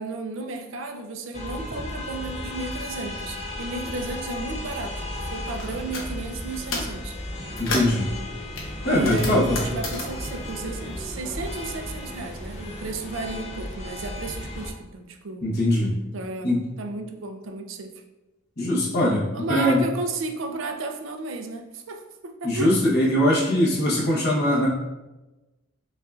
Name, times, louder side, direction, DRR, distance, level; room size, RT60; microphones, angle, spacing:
voice 1, 0.0-7.2 8.9-15.5 16.1-17.9 19.3-22.7, right 2 dB, 80° right, 5 dB, 0.5 m, -33 dB
sound 1, 1.3-14.7, left 1 dB, 35° left, 0.5 m, -35 dB
sound 2, 5.6-6.1 6.5-7.0 7.4-8.0 8.6-11.5 11.8-12.9, left 2 dB, 85° left, 0.9 m, -33 dB
voice 2, 7.6-8.1 8.8-9.6 15.4-15.9 16.4-16.6 18.6-19.2 19.5-19.8 22.4-24.7, left 1 dB, 55° left, -5 dB, 1.0 m, -21 dB
5.2 x 2.5 x 2.4 m, 1.1 s
head